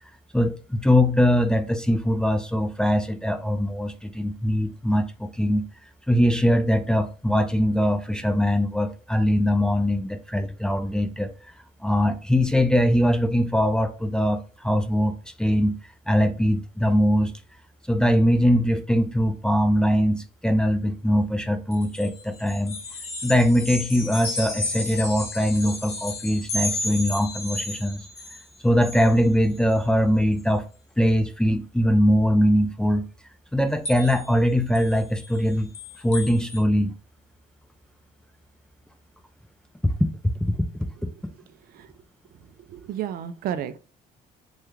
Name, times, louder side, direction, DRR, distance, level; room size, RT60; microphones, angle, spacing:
voice 1, 0.3-5.7 6.1-11.3 11.8-15.8 16.1-17.3 17.9-22.8 23.2-28.0 28.6-30.6 31.0-33.0 33.5-35.7 36.0-36.9 39.8-40.1 40.5-40.6, equal, 5° left, 0.3 m, -22 dB
sound 1, 21.7-28.4 28.8-29.2 29.6-29.8 30.4-30.5 33.9-34.3 34.8-36.6, left 2 dB, 40° left, 1.0 m, -33 dB
voice 2, 42.7-43.8, right 10 dB, 60° right, 0.4 m, -31 dB
3.3 x 2.3 x 3.0 m
cardioid pair, 110°, 17 cm